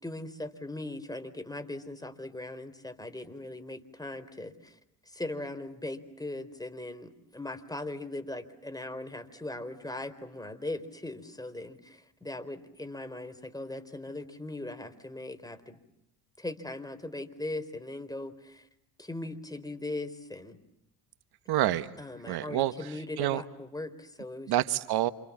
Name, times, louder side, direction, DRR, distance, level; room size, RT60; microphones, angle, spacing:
voice 1, 0.0-4.8 5.1-15.8 16.4-18.7 19.0-20.6 22.0-24.5, left 2 dB, 10° left, 9 dB, 4.2 m, -39 dB
voice 2, 21.5-21.9 22.3-23.4 24.5-25.1, right 14 dB, 65° right, 11 dB, 1.5 m, -28 dB
29.0 x 28.0 x 7.4 m, 0.84 s
hypercardioid pair, 65°, 42 cm